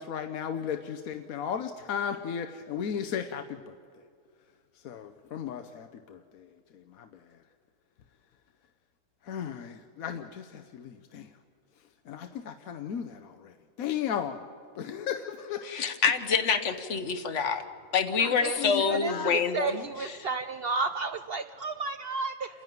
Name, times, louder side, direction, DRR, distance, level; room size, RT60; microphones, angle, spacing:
voice 1, 0.0-3.8 4.8-6.5 6.7-7.2 9.2-11.3 12.1-14.4 14.8-15.7 18.2-19.4, left 8 dB, 75° left, 5 dB, 1.2 m, -35 dB
voice 2, 15.7-17.6 17.9-20.2, left 5 dB, 55° left, 10 dB, 1.3 m, -27 dB
voice 3, 18.9-22.5, right 4 dB, 55° right, 9 dB, 0.7 m, -32 dB
29.0 x 11.0 x 9.3 m, 2.3 s
omnidirectional pair, 1.5 m